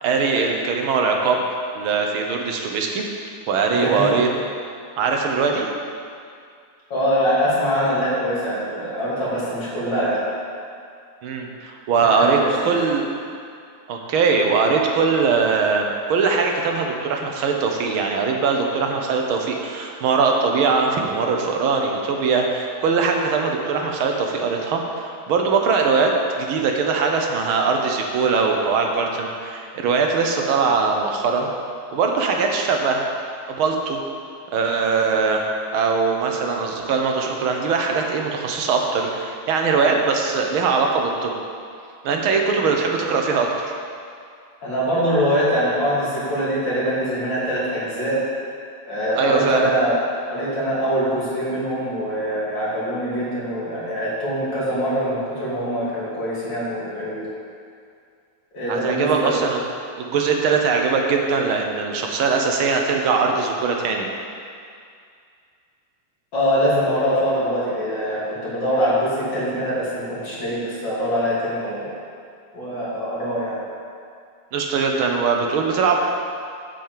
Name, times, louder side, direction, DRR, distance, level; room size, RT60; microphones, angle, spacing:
voice 1, 0.0-1.4 1.8-3.0 3.5-4.3 5.0-5.7 11.2-13.1 13.9-31.5 31.9-33.0 33.5-34.0 34.5-35.5 35.7-41.3 42.0-43.7 49.1-49.7 58.7-59.6 60.0-64.1 74.5-76.0, right 4 dB, 90° right, 2 dB, 1.8 m, -21 dB
voice 2, 3.7-4.2 6.9-10.2 12.0-12.8 44.6-48.2 48.9-57.3 58.5-59.3 66.3-71.9 72.5-73.6, equal, 65° left, -8 dB, 3.4 m, -23 dB
8.3 x 5.1 x 7.5 m, 2.3 s
omnidirectional pair, 2.2 m